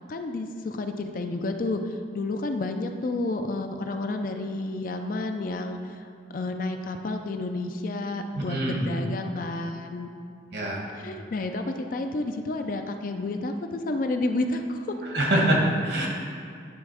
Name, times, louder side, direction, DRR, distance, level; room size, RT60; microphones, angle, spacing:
voice 1, 0.1-10.1 10.9-15.0, left 2 dB, 45° left, 6 dB, 0.4 m, -30 dB
voice 2, 8.4-8.9 10.5-10.8 15.1-16.1, right 1 dB, 60° right, -1 dB, 1.4 m, -24 dB
9.5 x 3.5 x 4.9 m, 2.2 s
head